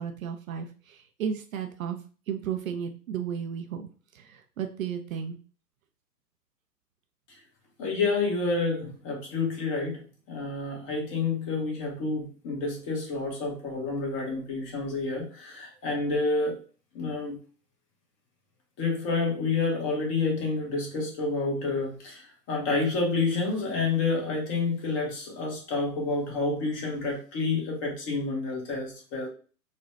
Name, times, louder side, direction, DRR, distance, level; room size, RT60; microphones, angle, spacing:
voice 1, 0.0-2.0 2.3-5.4, right 8 dB, 55° right, 6 dB, 0.6 m, -34 dB
voice 2, 7.8-10.0 10.3-16.6 16.9-17.4 18.8-29.3, left 3 dB, 30° left, -1 dB, 1.3 m, -29 dB
4.0 x 2.3 x 3.2 m, 0.39 s
figure-of-eight pair, 115°, 50 cm